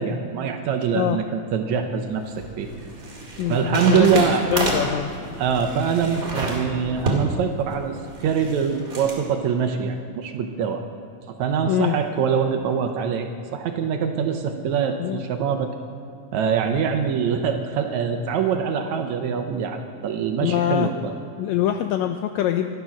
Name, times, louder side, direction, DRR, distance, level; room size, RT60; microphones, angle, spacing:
voice 1, 0.0-2.7 3.5-4.5 5.4-8.0 8.2-10.9 11.4-15.7 16.3-21.2, right 7 dB, 75° right, 6 dB, 2.0 m, -24 dB
sound 1, 1.9-9.2, right 2 dB, 30° right, 2.1 m, -30 dB
voice 2, 3.4-5.1 11.7-12.0 15.0-15.2 20.4-20.9 21.4-22.8, left 11 dB, 85° left, 7 dB, 1.6 m, -23 dB
13.0 x 12.0 x 6.1 m, 2.6 s
omnidirectional pair, 3.7 m